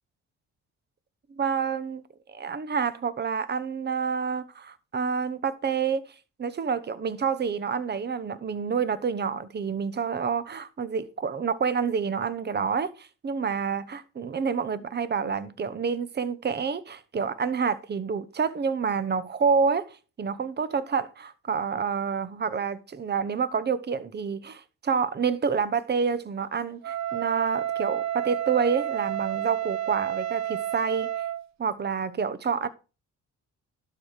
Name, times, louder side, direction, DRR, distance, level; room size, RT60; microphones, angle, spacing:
voice 1, 1.3-2.0 2.3-6.1 6.4-31.1 31.6-32.7, right 6 dB, 35° right, 1.0 m, -28 dB
Wind instrument woodwind instrument, 26.8-31.5, right 11 dB, 65° right, 0.8 m, -30 dB
12.0 x 4.9 x 4.9 m
cardioid pair, 90°, 30 cm